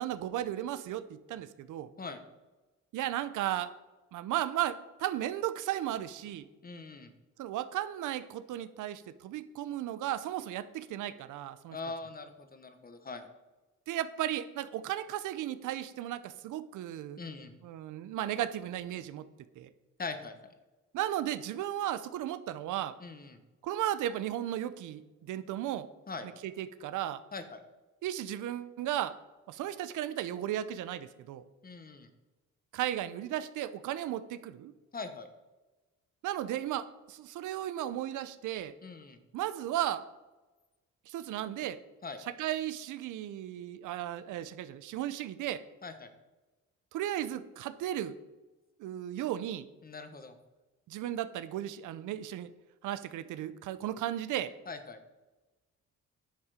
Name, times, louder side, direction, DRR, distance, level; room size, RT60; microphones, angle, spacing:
voice 1, 0.0-1.9 2.9-3.7 4.1-6.5 7.4-11.8 13.9-17.2 17.6-19.2 19.6-19.7 20.9-23.0 23.6-25.9 26.4-27.2 28.0-29.1 29.5-31.4 32.7-34.7 36.2-38.7 39.3-40.0 41.1-41.8 42.4-45.6 46.9-48.1 48.8-49.7 50.9-52.5 52.8-54.5, right 12 dB, 80° right, 14 dB, 0.7 m, -35 dB
voice 2, 6.6-7.1 11.7-13.3 17.2-17.6 20.0-20.3 23.0-23.4 26.1-26.3 27.3-27.6 31.6-32.1 34.9-35.3 38.8-39.2 42.0-42.2 45.8-46.1 49.8-50.3 54.7-55.0, left 4 dB, 30° left, 8 dB, 1.3 m, -42 dB
10.5 x 7.2 x 5.0 m, 1.1 s
cardioid pair, 90°, 30 cm